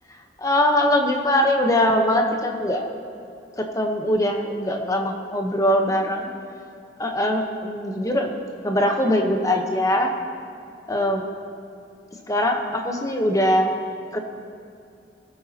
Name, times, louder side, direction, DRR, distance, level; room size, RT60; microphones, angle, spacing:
voice 1, 0.4-2.8 3.6-6.3 7.0-8.3 8.6-10.1 10.9-11.2 12.3-13.7 14.1-14.2, left 1 dB, 20° left, 3 dB, 0.9 m, -21 dB
20.0 x 9.3 x 2.9 m, 2.4 s
head